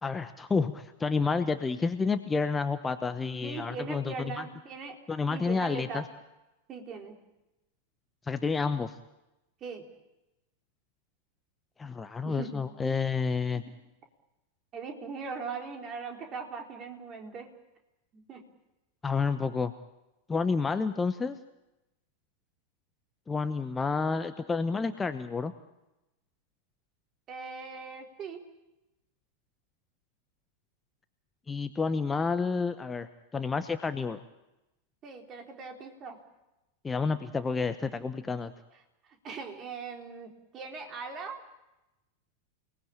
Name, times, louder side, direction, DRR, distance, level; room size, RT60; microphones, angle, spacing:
voice 1, 0.0-4.4 5.1-6.0 8.3-8.9 11.8-13.6 19.0-19.7 20.3-21.4 23.3-25.5 31.5-34.2 36.8-38.5, left 4 dB, 15° left, 10 dB, 1.1 m, -30 dB
voice 2, 3.4-5.0 5.3-6.1 6.7-7.1 9.6-9.8 12.2-12.6 13.6-13.7 14.7-17.5 18.1-18.4 27.3-28.4 35.0-36.2 39.2-41.4, right 5 dB, 30° right, 3 dB, 4.1 m, -40 dB
28.5 x 19.5 x 8.8 m, 0.98 s
figure-of-eight pair, 90°, 0 cm